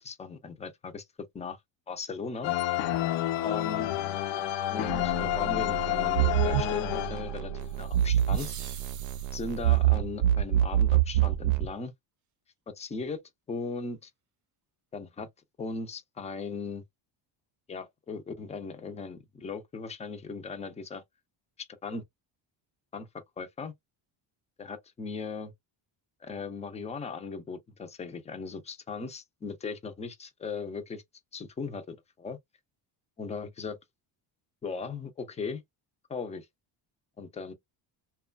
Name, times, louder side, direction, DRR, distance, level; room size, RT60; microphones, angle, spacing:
voice 1, 0.0-1.0 1.3-1.6 1.9-2.5 3.4-3.9 4.7-7.5 7.8-8.5 9.3-11.9 12.7-13.2 13.5-14.1 14.9-15.3 15.6-16.8 17.7-21.0 21.6-22.0 22.9-23.1 23.4-23.7 24.6-25.5 26.2-31.0 31.3-32.4 33.2-33.8 34.6-35.6 36.1-36.5 37.2-37.5, left 4 dB, 15° left, 0.4 m, -38 dB
sound 1, 2.4-7.7, left 13 dB, 70° left, 0.6 m, -29 dB
sound 2, 4.9-11.7, right 12 dB, 90° right, 0.6 m, -27 dB
sound 3, 7.6-9.8, right 8 dB, 40° right, 0.5 m, -46 dB
2.9 x 2.2 x 2.4 m
cardioid pair, 140°, 47 cm